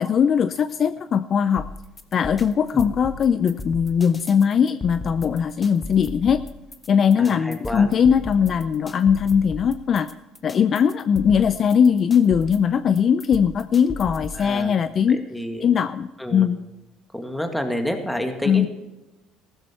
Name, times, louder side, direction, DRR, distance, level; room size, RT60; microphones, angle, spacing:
voice 1, 0.0-1.6 2.1-6.4 6.9-10.1 10.4-15.2 15.6-16.6 18.4-18.7, left 7 dB, 45° left, 12 dB, 0.5 m, -20 dB
sound 1, 1.6-14.5, left 2 dB, 20° left, 1.2 m, -37 dB
voice 2, 7.2-7.9 14.3-14.7 15.1-15.7 16.2-16.5 17.1-18.7, equal, 5° left, 5 dB, 2.0 m, -29 dB
15.0 x 13.0 x 4.5 m, 1.0 s
supercardioid pair, 100°, 0 cm